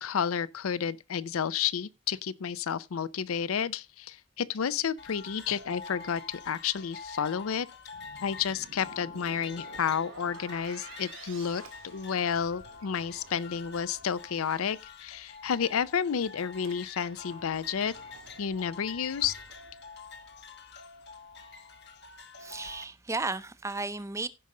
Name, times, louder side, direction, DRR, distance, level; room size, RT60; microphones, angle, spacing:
voice 1, 0.0-7.7 8.2-17.9 18.4-19.3, left 7 dB, 80° left, 0.5 m, -31 dB
sound 1, 5.0-22.8, left 5 dB, 50° left, 1.1 m, -47 dB
sound 2, 7.9-12.7, right 5 dB, 65° right, 1.0 m, -50 dB
Sliding door, 11.2-15.4 15.7-20.4, right 3 dB, 90° right, 1.7 m, -57 dB
voice 2, 22.4-24.3, right 3 dB, 15° right, 0.5 m, -34 dB
16.0 x 5.4 x 3.7 m
head